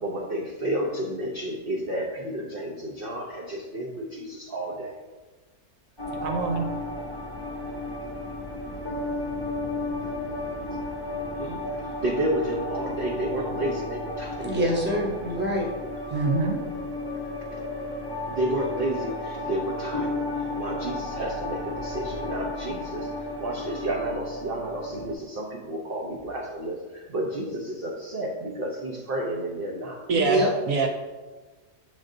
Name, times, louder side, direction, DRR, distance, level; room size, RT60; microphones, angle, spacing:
voice 1, 0.0-4.9 11.4-11.6 12.0-14.5 18.3-20.2 20.6-23.0 23.4-26.8 27.1-30.0, right 1 dB, 50° right, -2 dB, 0.8 m, -31 dB
sound 1, 6.0-25.1, left 2 dB, 20° left, 0.7 m, -33 dB
voice 2, 6.1-6.7 16.1-16.6 30.1-30.9, right 3 dB, 70° right, 3 dB, 1.0 m, -25 dB
voice 3, 14.4-15.7 16.1-16.2 30.1-30.5, right 1 dB, 10° right, -2 dB, 0.9 m, -25 dB
7.6 x 3.6 x 3.7 m, 1.3 s
omnidirectional pair, 1.6 m